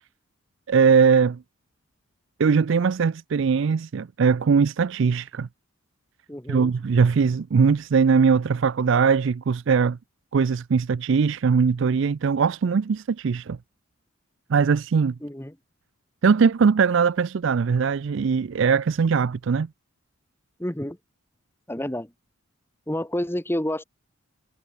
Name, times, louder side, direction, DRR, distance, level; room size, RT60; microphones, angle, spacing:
voice 1, 0.7-1.4 2.4-5.5 6.5-10.0 10.3-13.6 14.5-15.2 16.2-19.7, right 5 dB, 55° right, 0.4 m, -20 dB
voice 2, 6.3-6.7 15.2-15.6 20.6-21.0 21.7-22.1 22.9-23.8, left 1 dB, 10° left, 1.2 m, -29 dB
head